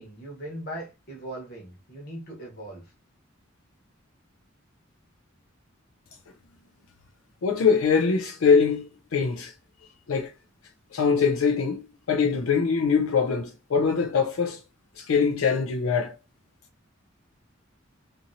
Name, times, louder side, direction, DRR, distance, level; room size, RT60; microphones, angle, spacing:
voice 1, 0.0-2.8, right 1 dB, 50° left, 1.1 m, -39 dB
voice 2, 7.4-9.5 10.1-10.3 10.9-14.6 15.0-16.2, left 5 dB, 85° left, 0.4 m, -23 dB
2.8 x 2.6 x 2.6 m
head